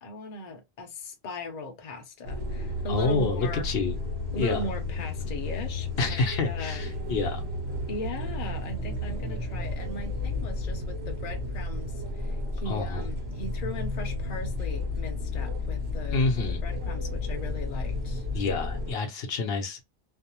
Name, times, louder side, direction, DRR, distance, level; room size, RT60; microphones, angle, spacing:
voice 1, 0.0-3.7 4.3-6.9 7.9-16.3 16.6-18.3, left 2 dB, 45° left, 0.7 m, -38 dB
sound 1, 2.2-18.9, left 2 dB, 85° right, 1.1 m, -32 dB
voice 2, 2.9-3.9 4.4-4.6 6.0-7.4 12.7-13.1 16.1-16.6 18.3-19.8, left 3 dB, 75° left, 0.9 m, -28 dB
2.5 x 2.0 x 2.8 m
omnidirectional pair, 1.0 m